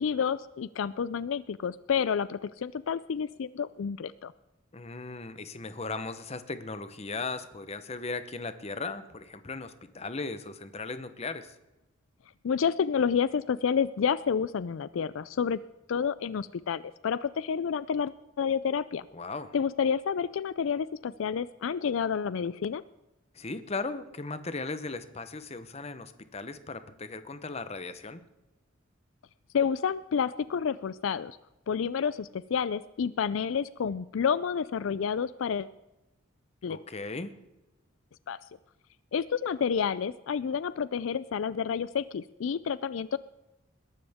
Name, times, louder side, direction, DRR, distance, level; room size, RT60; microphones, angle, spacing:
voice 1, 0.0-4.3 12.4-15.6 15.9-18.1 18.4-19.0 19.5-22.8 29.5-31.4 31.7-35.7 36.6-36.8 38.3-38.4 39.1-43.2, left 7 dB, 75° left, 17 dB, 0.4 m, -29 dB
voice 2, 4.7-11.5 19.1-19.5 23.3-28.2 36.7-37.4, left 3 dB, 30° left, 11 dB, 0.9 m, -37 dB
21.0 x 12.0 x 3.6 m, 0.97 s
head